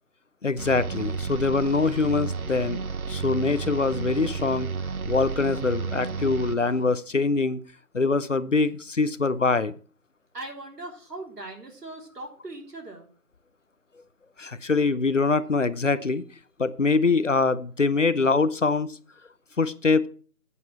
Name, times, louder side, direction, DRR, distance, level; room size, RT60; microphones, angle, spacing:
voice 1, 0.4-2.8 3.1-4.7 5.1-7.6 7.9-9.7 14.4-16.2 16.6-19.0 19.6-20.1, left 4 dB, 55° left, 16 dB, 0.6 m, -24 dB
sound 1, 0.6-6.8, right 5 dB, 65° right, 0.8 m, -32 dB
voice 2, 10.3-13.1, right 2 dB, 85° right, 2 dB, 3.5 m, -39 dB
8.3 x 7.2 x 5.7 m, 0.41 s
figure-of-eight pair, 180°, 46 cm